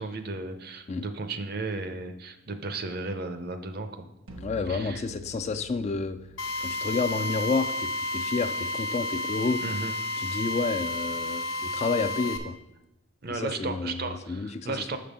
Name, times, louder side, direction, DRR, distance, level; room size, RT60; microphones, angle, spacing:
voice 1, 0.0-4.1 4.7-5.0 9.6-9.9 13.2-15.0, right 3 dB, 50° right, 8 dB, 0.6 m, -34 dB
sound 1, 4.3-10.2, right 3 dB, 80° right, 1.2 m, -50 dB
voice 2, 4.4-6.2 6.6-9.6 10.2-12.6 13.3-15.0, left 4 dB, 30° left, 10 dB, 0.3 m, -30 dB
Drill, 6.4-12.4, left 2 dB, 70° left, 0.9 m, -31 dB
6.7 x 5.2 x 5.4 m, 0.90 s
head